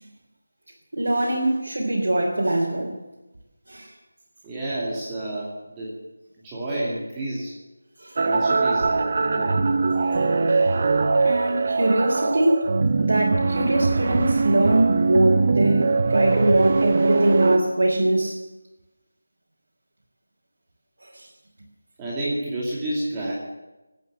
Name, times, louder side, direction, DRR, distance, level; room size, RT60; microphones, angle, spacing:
voice 1, 0.9-3.0 3.7-3.9 8.0-8.2 11.2-12.7 13.0-18.4 21.1-21.3, right 1 dB, 65° right, -3 dB, 3.5 m, -22 dB
voice 2, 4.4-5.9 6.4-7.5 8.2-9.6 22.0-23.3, right 1 dB, 15° right, -7 dB, 2.6 m, -30 dB
sound 1, 8.2-17.6, right 4 dB, 40° right, 1.1 m, -22 dB
18.5 x 9.2 x 7.5 m, 1.1 s
figure-of-eight pair, 170°, 0 cm